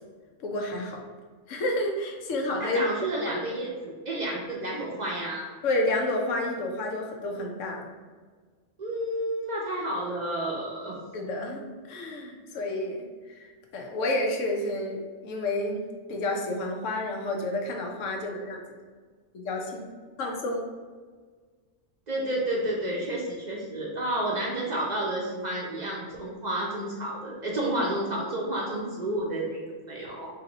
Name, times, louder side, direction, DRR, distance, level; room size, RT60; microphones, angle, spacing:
voice 1, 0.4-1.0 1.5-2.8 3.3-3.4 5.6-7.9 11.1-11.6 11.9-13.5 13.7-18.8 19.3-19.8 20.2-20.7, left 1 dB, 80° left, 2 dB, 1.0 m, -30 dB
voice 2, 2.6-5.5 8.8-11.0 22.1-30.3, right 1 dB, 45° right, -4 dB, 0.6 m, -30 dB
3.3 x 2.7 x 3.9 m, 1.5 s
omnidirectional pair, 1.3 m